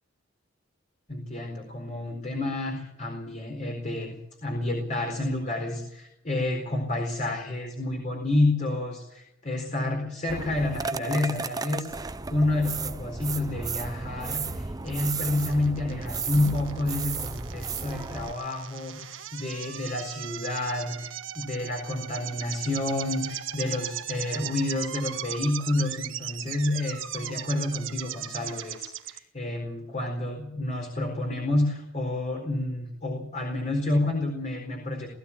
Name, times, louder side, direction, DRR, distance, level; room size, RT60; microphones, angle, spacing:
voice 1, 1.1-4.2 4.4-35.1, left 2 dB, 40° left, 2 dB, 4.3 m, -29 dB
sound 1, 10.3-18.3, right 4 dB, 20° right, 0.7 m, -34 dB
sound 2, 14.9-29.2, right 11 dB, 75° right, 1.5 m, -38 dB
20.0 x 15.0 x 8.6 m, 0.83 s
head